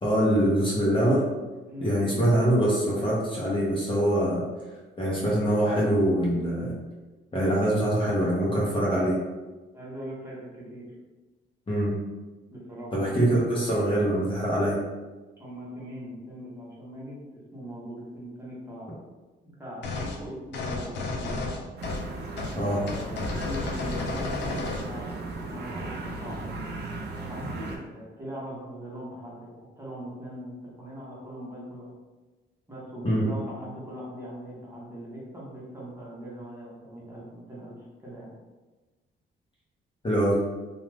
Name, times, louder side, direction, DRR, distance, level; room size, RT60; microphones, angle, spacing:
voice 1, 0.0-1.2 1.8-4.4 5.0-6.7 7.3-9.2 11.7-11.9 12.9-14.8 22.5-22.8 33.0-33.2 40.0-40.4, right 1 dB, 25° left, -6 dB, 0.9 m, -24 dB
voice 2, 9.7-10.9 12.5-13.7 15.4-18.9 19.4-21.4 22.5-26.6 27.2-29.5 29.8-31.9 32.7-38.3, equal, 15° right, -7 dB, 1.0 m, -41 dB
sound 1, 19.8-20.2 20.5-22.1 22.4-22.6 22.9-24.9, left 3 dB, 65° left, 0.5 m, -32 dB
sound 2, 21.8-27.8, right 2 dB, 55° right, 0.6 m, -36 dB
2.4 x 2.4 x 3.3 m, 1.2 s
cardioid pair, 90°, 20 cm